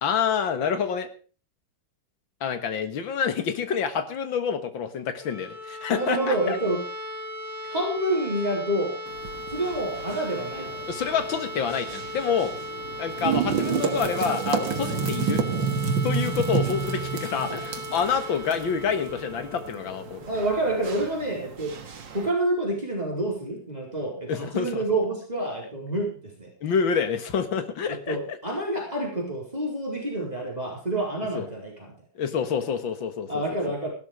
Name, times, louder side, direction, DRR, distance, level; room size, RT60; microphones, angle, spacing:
voice 1, 0.0-1.1 2.4-6.6 10.9-12.5 13.0-15.4 16.0-20.2 24.3-24.8 26.6-28.4 31.3-31.5 32.2-33.4, left 7 dB, 70° left, 10 dB, 2.3 m, -27 dB
sound 1, 5.1-20.9, left 1 dB, 40° left, 3.7 m, -37 dB
voice 2, 5.9-6.8 7.6-9.0 9.5-10.9 17.4-17.6 20.3-21.7 22.1-26.5 27.9-31.9 33.3-33.9, right 1 dB, 20° right, -1 dB, 4.5 m, -28 dB
sound 2, 9.1-22.3, right 6 dB, 65° right, 2.3 m, -31 dB
15.5 x 12.5 x 5.0 m, 0.38 s
omnidirectional pair, 2.2 m